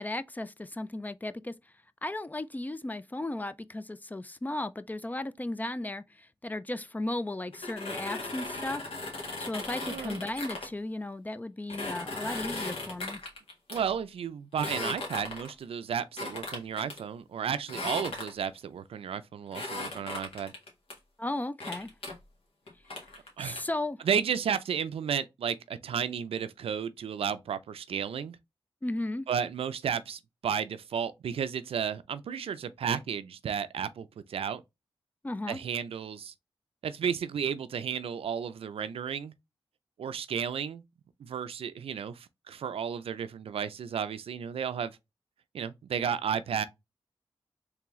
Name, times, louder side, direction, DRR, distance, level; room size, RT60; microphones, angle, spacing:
voice 1, 0.0-1.5 2.0-8.8 9.1-13.2 21.2-21.9 23.4-24.0 28.8-29.3 35.2-35.6, left 2 dB, 15° left, 0.4 m, -35 dB
sound 1, 7.5-10.7 11.7-13.8 14.5-15.6 16.2-17.0 17.7-18.6 19.5-20.9 21.6-22.1 22.7-23.6, left 2 dB, 75° left, 1.6 m, -37 dB
voice 2, 9.8-10.2 13.7-20.5 23.4-23.6 24.0-28.4 29.3-34.6 35.5-36.3 36.8-39.3 40.0-40.8 41.2-45.0 45.5-46.6, right 7 dB, 85° right, 0.4 m, -33 dB
3.5 x 3.4 x 3.0 m
wide cardioid pair, 85°, 10 cm